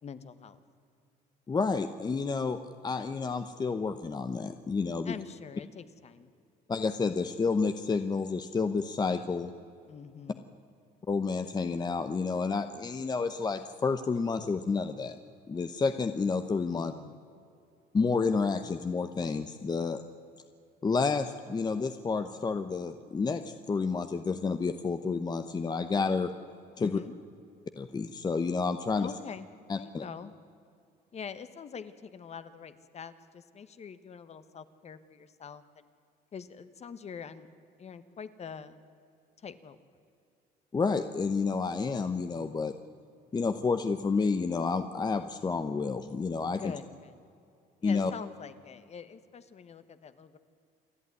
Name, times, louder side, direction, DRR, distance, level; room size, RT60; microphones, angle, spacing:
voice 1, 0.0-0.6 5.0-6.3 9.9-10.4 16.7-17.2 26.8-27.1 29.0-29.5 29.7-30.3 31.1-35.9 36.3-37.5 37.8-38.8 39.4-39.8 46.6-47.2 47.8-50.4, left 6 dB, 40° left, 12 dB, 1.3 m, -44 dB
voice 2, 1.5-2.6 2.8-5.1 6.7-9.5 11.1-15.2 15.5-16.9 17.9-20.0 20.8-26.3 26.8-27.0 27.8-29.1 29.7-30.0 40.7-42.7 43.3-46.7 47.8-48.1, left 4 dB, 25° left, 9 dB, 0.9 m, -30 dB
28.0 x 11.0 x 9.6 m, 2.5 s
cardioid pair, 110°, 17 cm